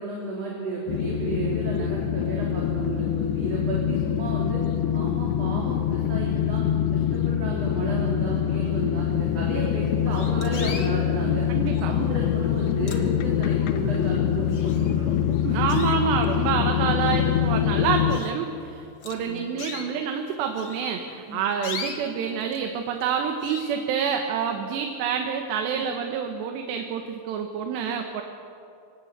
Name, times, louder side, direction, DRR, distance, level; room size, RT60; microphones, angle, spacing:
voice 1, 0.0-4.6 4.9-6.6 6.9-11.5 11.8-15.1 15.4-15.6 16.5-16.6 19.2-19.4 21.3-21.4 25.7-25.8 27.8-27.9, right 3 dB, 40° right, -4 dB, 4.0 m, -33 dB
sound 1, 0.9-18.2, left 10 dB, 85° left, 3.3 m, -24 dB
sound 2, 9.4-9.5 10.1-10.9 11.7-12.1 12.6-13.5 14.0-14.1 14.5-15.2 15.7-16.4 17.0-17.1 17.5-17.6 18.1-18.4 19.0-19.9 20.5-22.6 22.9-23.1 23.4-23.7, left 6 dB, 70° left, 1.1 m, -39 dB
voice 2, 11.5-11.9 15.5-28.2, right 7 dB, 90° right, 4 dB, 3.4 m, -27 dB
26.0 x 18.0 x 8.1 m, 2.5 s
omnidirectional pair, 4.8 m